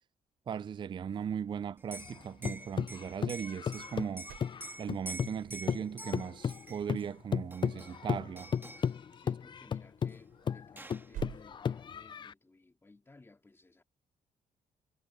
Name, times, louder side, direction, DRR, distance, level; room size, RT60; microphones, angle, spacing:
voice 1, 0.5-4.3 4.8-8.5, right 8 dB, 35° right, 0.4 m, -38 dB
sound 1, 1.0-12.2, right 13 dB, 85° right, 6.6 m, -54 dB
Liquid, 1.8-7.1 7.5-8.1 8.4-8.9 10.1-10.2 10.5-11.1, right 1 dB, 15° right, 2.0 m, -47 dB
sound 2, 2.0-5.4 5.7-12.3, left 7 dB, 35° left, 0.4 m, -35 dB
voice 2, 9.2-13.8, left 2 dB, 15° left, 2.4 m, -59 dB
cardioid pair, 100°, 14 cm